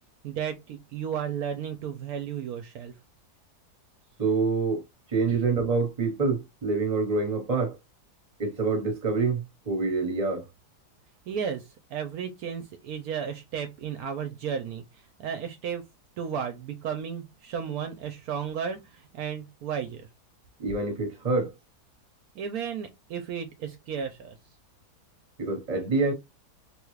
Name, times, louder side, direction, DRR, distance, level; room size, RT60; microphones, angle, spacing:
voice 1, 0.2-2.9 5.3-5.5 11.3-15.8 16.2-20.0 22.4-24.4, right 7 dB, 75° right, 1.0 m, -34 dB
voice 2, 4.2-4.8 5.1-7.8 8.4-10.4 20.6-21.5 25.4-26.1, right 4 dB, 25° right, 1.2 m, -26 dB
3.4 x 2.3 x 3.2 m
omnidirectional pair, 1.7 m